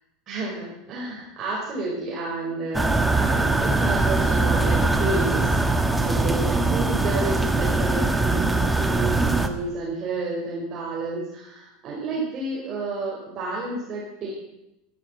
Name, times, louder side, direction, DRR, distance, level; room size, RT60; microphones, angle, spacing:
voice 1, 0.3-14.3, right 3 dB, 35° right, -3 dB, 5.0 m, -31 dB
sound 1, 2.7-9.5, right 2 dB, 5° right, 1.3 m, -22 dB
14.0 x 12.5 x 7.4 m, 0.87 s
supercardioid pair, 135°, 0 cm